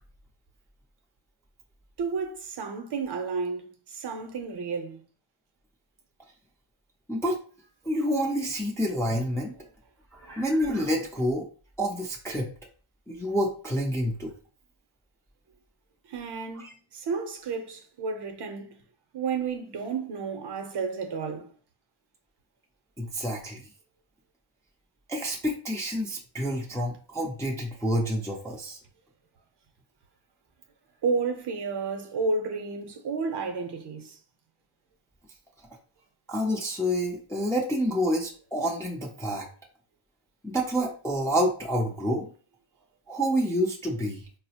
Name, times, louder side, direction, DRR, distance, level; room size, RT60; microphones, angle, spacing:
voice 1, 2.0-5.0 10.2-10.4 16.1-16.6 16.9-18.7 19.1-21.5 31.0-34.2, right 4 dB, 55° right, 0.6 m, -31 dB
voice 2, 7.8-9.5 10.1-11.5 11.8-12.5 13.1-14.3 16.5-16.7 23.0-23.7 25.1-28.8 36.3-39.5 40.4-42.3 43.1-44.2, equal, 5° left, 0.3 m, -28 dB
4.7 x 2.0 x 2.7 m
wide cardioid pair, 170°, 49 cm